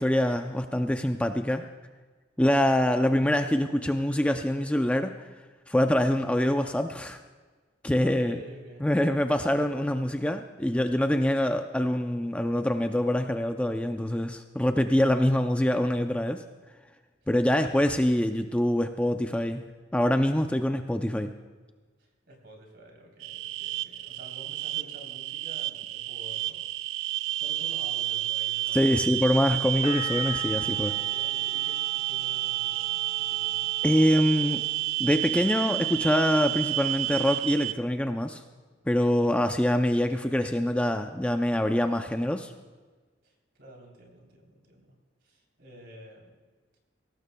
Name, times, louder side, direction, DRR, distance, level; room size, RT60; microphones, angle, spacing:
voice 1, 0.0-1.7 2.4-5.1 5.7-7.2 7.8-8.4 8.8-16.4 17.3-19.6 19.9-21.3 28.7-30.9 33.8-34.6 35.0-38.4 38.9-42.5, left 1 dB, 5° left, 6 dB, 0.4 m, -25 dB
voice 2, 8.0-9.1 17.2-17.3 17.6-17.9 22.0-26.7 27.4-29.5 30.7-34.0 43.2-45.0 45.2-46.4, right 1 dB, 60° right, 0 dB, 3.4 m, -50 dB
sound 1, 23.2-37.7, right 17 dB, 85° right, 0.4 m, -30 dB
sound 2, 29.8-35.5 35.8-36.5, left 5 dB, 35° left, 1.1 m, -43 dB
22.0 x 17.5 x 2.3 m, 1.4 s
head